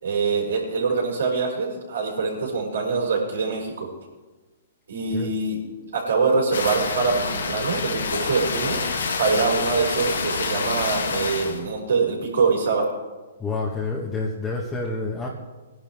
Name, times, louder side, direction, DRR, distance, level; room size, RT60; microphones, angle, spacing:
voice 1, 0.0-3.9 4.9-5.6 5.9-8.8 9.2-12.9, right 4 dB, 80° right, -2 dB, 5.6 m, -24 dB
sound 1, 6.5-11.6, left 4 dB, 80° left, 1.9 m, -27 dB
voice 2, 13.4-15.3, left 3 dB, 15° left, -4 dB, 1.8 m, -28 dB
21.0 x 11.5 x 3.7 m, 1.2 s
hypercardioid pair, 135°, 0 cm